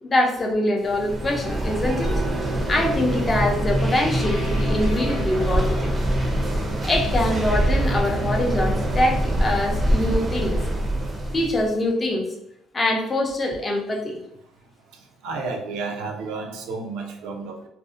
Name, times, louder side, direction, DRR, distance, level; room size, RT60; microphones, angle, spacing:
voice 1, 0.0-2.2 2.7-6.0 6.8-10.6 11.3-12.3 12.7-14.2, left 1 dB, 25° left, 2 dB, 0.5 m, -24 dB
sound 1, 0.9-11.7, right 1 dB, 30° right, 0.5 m, -24 dB
Mallet percussion, 2.0-7.9, right 7 dB, 55° left, 0.7 m, -41 dB
sound 2, 4.2-7.5, equal, 90° left, 0.7 m, -40 dB
voice 2, 14.9-17.7, right 3 dB, 85° right, 3 dB, 0.5 m, -32 dB
2.5 x 2.0 x 2.4 m, 0.81 s
cardioid pair, 115°, 0 cm